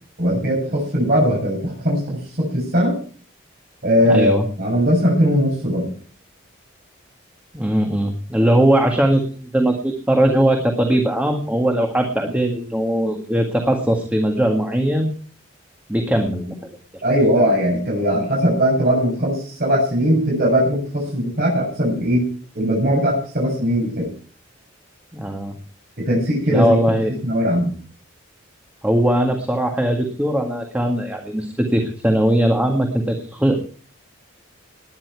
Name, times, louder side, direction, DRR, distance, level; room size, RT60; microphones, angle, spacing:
voice 1, 0.2-3.0 3.8-5.9 17.0-22.2 22.5-24.1 26.0-26.8 27.2-27.8, equal, 50° right, -3 dB, 7.4 m, -19 dB
voice 2, 4.0-4.5 7.5-15.1 15.9-17.0 25.1-25.5 26.5-27.1 28.8-33.6, right 1 dB, 10° right, 2 dB, 1.8 m, -20 dB
19.0 x 10.5 x 4.8 m, 0.43 s
head